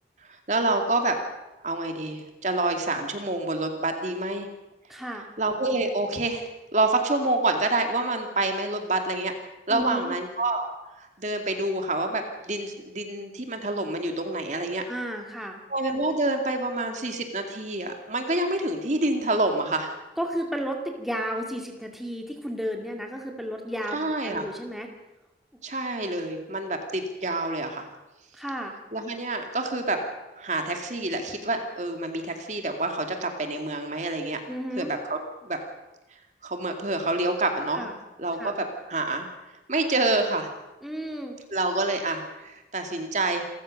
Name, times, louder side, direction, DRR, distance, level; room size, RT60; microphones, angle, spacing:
voice 1, 0.5-1.2 1.6-4.5 5.4-9.3 9.7-10.7 11.0-14.8 15.7-19.9 23.9-24.4 25.6-27.9 28.9-30.0 30.4-34.4 34.8-35.6 36.4-37.8 38.2-38.5 38.9-39.3 39.7-40.5 41.5-43.4, right 2 dB, 40° right, 5 dB, 2.4 m, -27 dB
voice 2, 4.9-5.3 9.7-10.2 14.9-15.6 20.2-24.9 28.3-28.7 34.5-34.9 37.7-37.9 38.4-38.6 40.8-41.4, equal, ahead, 2 dB, 2.2 m, -33 dB
27.5 x 14.5 x 6.5 m, 1.0 s
head